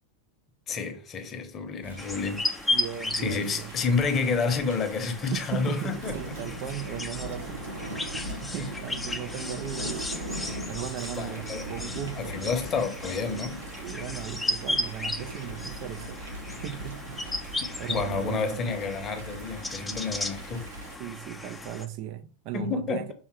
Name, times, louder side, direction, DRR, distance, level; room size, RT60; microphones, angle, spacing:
voice 1, 0.7-2.4 3.1-6.3 8.6-8.7 9.4-9.5 11.1-11.7 12.2-13.6 17.9-20.7 22.5-23.1, left 4 dB, 25° left, 1.1 m, -30 dB
Thunder / Rain, 1.8-21.0, right 2 dB, 70° right, 1.3 m, -40 dB
sound 1, 2.0-21.9, left 1 dB, 5° left, 0.7 m, -35 dB
voice 2, 2.7-3.7 5.3-7.7 8.4-10.0 10.7-12.4 13.8-16.2 16.6-17.2 17.8-18.6 21.0-23.1, right 11 dB, 40° right, 0.5 m, -37 dB
5.7 x 3.6 x 4.6 m
figure-of-eight pair, 90°, 0 cm